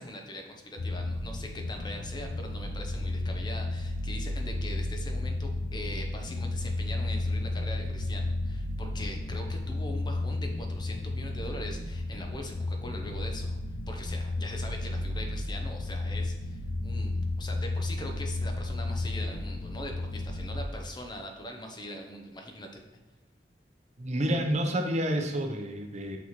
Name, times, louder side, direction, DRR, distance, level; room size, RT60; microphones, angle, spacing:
voice 1, 0.0-13.6 13.9-22.7, left 1 dB, 25° left, 3 dB, 0.7 m, -42 dB
sound 1, 0.8-20.7, left 2 dB, 90° left, 0.5 m, -33 dB
voice 2, 24.0-26.2, equal, 40° right, 4 dB, 0.7 m, -29 dB
6.1 x 5.7 x 3.0 m, 1.2 s
head